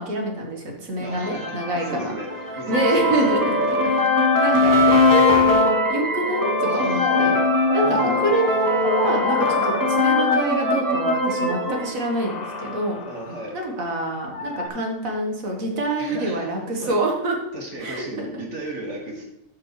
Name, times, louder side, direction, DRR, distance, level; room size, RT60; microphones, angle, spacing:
voice 1, 0.0-2.1 2.5-3.6 3.9-4.0 4.4-7.4 7.7-13.0 13.5-17.4 17.8-18.4, right 2 dB, 85° right, 1 dB, 2.0 m, -26 dB
voice 2, 1.0-1.6 1.9-2.3 2.6-3.8 4.3-4.4 6.6-7.3 7.8-8.3 13.1-13.6 16.0-16.5 16.8-16.9 17.5-19.2, right 1 dB, 60° right, -1 dB, 2.2 m, -34 dB
sound 1, 1.2-12.9, left 2 dB, 20° right, 0.8 m, -21 dB
sound 2, 2.7-6.3 6.6-11.1 11.6-11.7 11.9-14.7, left 4 dB, 50° left, 1.0 m, -34 dB
12.5 x 6.0 x 3.2 m, 0.89 s
omnidirectional pair, 1.4 m